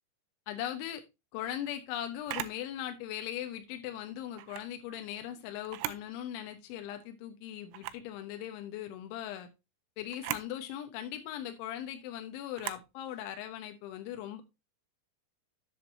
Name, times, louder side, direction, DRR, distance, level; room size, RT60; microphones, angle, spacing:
voice 1, 0.5-1.0 1.3-9.5 10.0-14.4, left 11 dB, 85° left, 6 dB, 3.5 m, -39 dB
Camera, 2.3-2.6 4.3-4.7 5.6-6.1 6.5-6.6 7.7-8.1 10.1-10.5 12.5-12.9, right 15 dB, 85° right, 2.9 m, -38 dB
11.0 x 8.1 x 2.7 m, 0.24 s
omnidirectional pair, 5.4 m